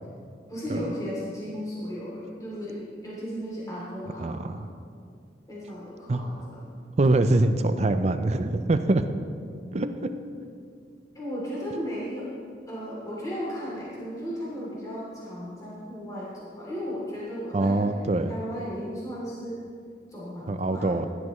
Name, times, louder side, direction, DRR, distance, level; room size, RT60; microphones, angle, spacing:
voice 1, 0.5-4.7 5.5-6.7 7.1-7.4 9.7-10.1 11.1-12.3 12.7-17.8 18.2-19.6 20.1-21.1, equal, 20° left, -7 dB, 3.0 m, -35 dB
voice 2, 4.2-4.6 6.1-6.2 7.0-9.0 9.7-9.9 17.5-18.3 20.5-21.0, right 2 dB, 40° right, 9 dB, 0.5 m, -23 dB
15.5 x 11.5 x 3.1 m, 2.3 s
head